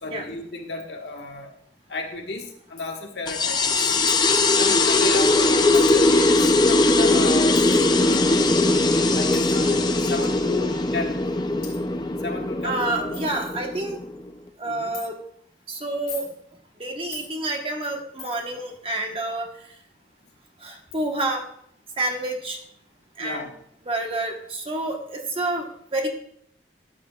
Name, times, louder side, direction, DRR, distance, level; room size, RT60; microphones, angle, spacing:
voice 1, 0.0-1.5 1.9-4.0 4.4-7.6 8.0-8.5 9.1-9.8 10.1-11.2 12.2-13.2 14.6-14.9 23.2-23.6, left 3 dB, 70° left, 1 dB, 1.6 m, -33 dB
Coin (dropping), 2.8-3.0 4.1-4.4 5.7-6.0 7.5-7.8 9.3-9.5 10.5-10.6 11.3-11.4 11.6-11.8 12.4-12.5 12.8-12.9 13.1-13.3 13.7-14.0 14.9-15.1 15.9-16.4 17.1-17.3 18.2-18.5 20.2-20.3 20.9-21.0, left 7 dB, 50° left, 3.7 m, -41 dB
sound 1, 3.3-14.3, left 2 dB, 25° left, 0.6 m, -20 dB
voice 2, 12.6-14.0 14.6-15.1 15.7-16.3 16.8-19.5 20.6-21.4 22.0-22.6 23.2-23.5 23.9-26.1, right 2 dB, 30° right, 1 dB, 1.3 m, -28 dB
13.5 x 7.9 x 2.4 m, 0.68 s
head